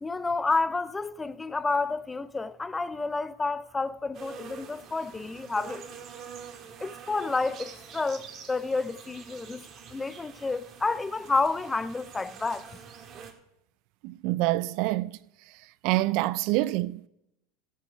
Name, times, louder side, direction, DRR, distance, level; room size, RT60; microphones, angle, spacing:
voice 1, 0.0-5.9 6.8-9.6 9.9-12.7, left 3 dB, 15° left, 0.5 m, -30 dB
sound 1, 4.1-13.3, right 7 dB, 40° right, 1.9 m, -46 dB
voice 2, 14.0-15.1 15.8-17.1, right 18 dB, 60° right, 0.4 m, -26 dB
13.5 x 8.3 x 5.3 m
hypercardioid pair, 95°, 0 cm